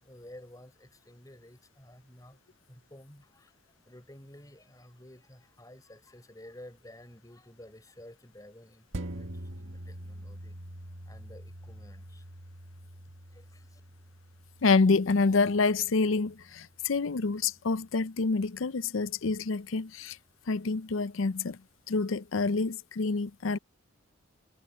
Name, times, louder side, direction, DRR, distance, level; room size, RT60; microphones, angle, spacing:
voice 1, 0.0-2.4 2.7-3.5 3.8-10.6 11.1-12.2 13.3-13.8, left 1 dB, 20° left, 5.3 m, -52 dB
sound 1, 8.9-17.7 18.2-18.3, right 1 dB, 80° right, 1.7 m, -45 dB
voice 2, 14.6-20.2 20.5-21.6 21.9-23.6, left 4 dB, 85° left, 0.6 m, -27 dB
head